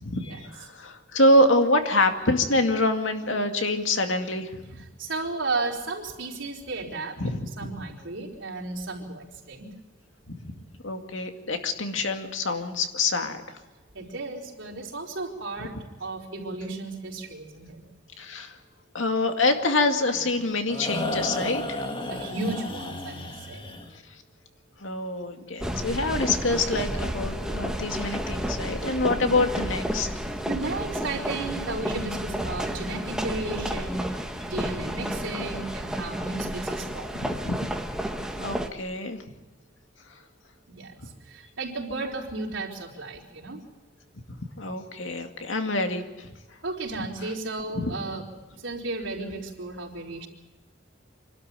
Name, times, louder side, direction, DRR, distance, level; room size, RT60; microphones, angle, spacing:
voice 1, 0.0-4.8 7.2-7.8 10.4-10.5 10.8-13.4 18.2-18.5 18.9-21.8 24.8-30.1 37.1-37.6 38.3-39.2 44.6-46.3 47.2-47.3 47.7-47.9, left 2 dB, 85° left, 5 dB, 2.3 m, -26 dB
voice 2, 5.0-7.2 7.6-9.7 13.9-15.7 16.0-17.8 22.1-23.6 30.5-34.2 34.5-37.1 40.7-40.9 41.3-43.6 46.6-48.2 48.5-50.3, right 3 dB, 75° right, -1 dB, 4.4 m, -34 dB
sound 1, 20.1-24.0, left 2 dB, 25° left, 1.9 m, -33 dB
sound 2, 25.6-38.7, equal, 5° right, 1.5 m, -31 dB
26.5 x 12.5 x 9.0 m, 1.1 s
head